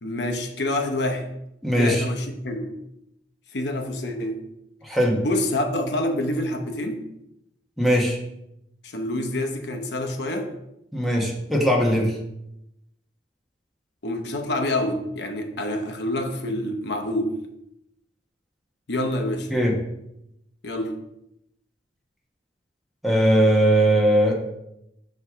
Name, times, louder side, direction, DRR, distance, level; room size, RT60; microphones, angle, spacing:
voice 1, 0.0-1.3 1.7-2.7 3.5-4.4 5.2-7.0 8.8-10.5 14.0-17.3 18.9-19.5 20.6-21.0, left 1 dB, 70° left, 5 dB, 0.8 m, -27 dB
voice 2, 1.6-2.0 4.8-5.2 7.8-8.2 10.9-12.1 19.5-19.7 23.0-24.3, equal, ahead, -2 dB, 1.1 m, -19 dB
5.6 x 4.7 x 3.6 m, 0.83 s
head